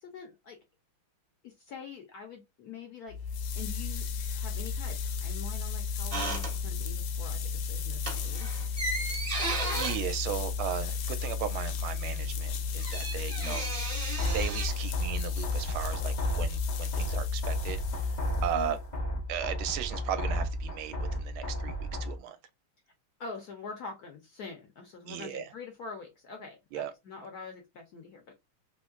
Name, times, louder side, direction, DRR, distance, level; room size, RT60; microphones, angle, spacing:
voice 1, 0.0-0.6 1.4-8.5 13.4-13.6 18.5-18.8 23.2-28.3, left 5 dB, 65° left, 1.0 m, -45 dB
sound 1, 3.1-18.9, left 5 dB, 80° left, 1.6 m, -34 dB
sound 2, 6.1-7.0 7.3-7.6 7.9-11.4 11.7-11.8 12.0-14.7, right 2 dB, 25° right, 0.8 m, -35 dB
voice 2, 9.7-13.6 14.3-18.2 18.4-18.8 19.3-22.4 25.0-25.5 26.7-26.9, right 10 dB, 80° right, 1.4 m, -36 dB
sound 3, 14.2-22.2, equal, 30° left, 0.8 m, -34 dB
3.6 x 3.1 x 2.3 m
omnidirectional pair, 2.4 m